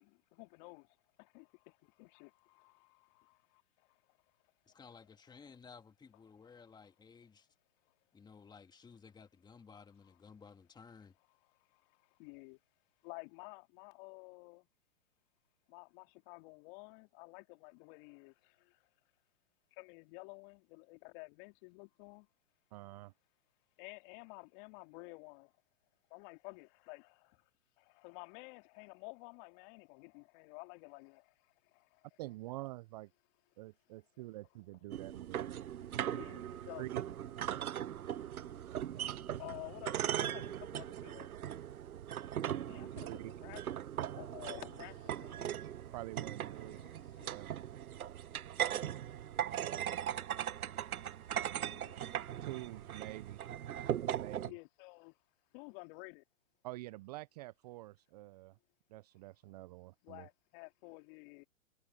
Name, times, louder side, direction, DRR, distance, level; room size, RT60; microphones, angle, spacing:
voice 1, 0.0-4.2 4.7-4.8 10.0-10.2 11.3-12.6 13.0-14.7 15.7-18.8 19.7-22.3 23.8-25.5 26.1-27.4 27.8-32.1 36.1-36.8 38.2-38.5 39.4-41.3 42.6-43.6 43.9-45.9 46.6-47.4 51.6-52.0 54.5-55.2 55.5-56.2 60.0-61.4, left 32 dB, 40° left, 2.9 m, -52 dB
voice 2, 4.7-7.5 8.1-11.2, left 5 dB, 10° left, 1.9 m, -56 dB
voice 3, 22.7-23.1 32.2-33.1 33.6-35.4 36.8-37.0 43.0-43.3 45.9-46.8 47.2-47.5 49.4-50.2 52.4-53.4 54.1-54.5 56.6-58.6 58.9-60.3, right 19 dB, 30° right, 0.5 m, -47 dB
sound 1, 34.7-39.7, left 12 dB, 65° left, 3.3 m, -71 dB
sound 2, 34.9-54.5, right 10 dB, 85° right, 0.7 m, -39 dB
sound 3, 38.6-39.1 39.7-39.8 40.4-41.1 42.5-43.2 44.3-44.5 45.0-45.4 46.1-46.4, right 11 dB, 65° right, 6.7 m, -63 dB
hypercardioid pair, 125°, 42 cm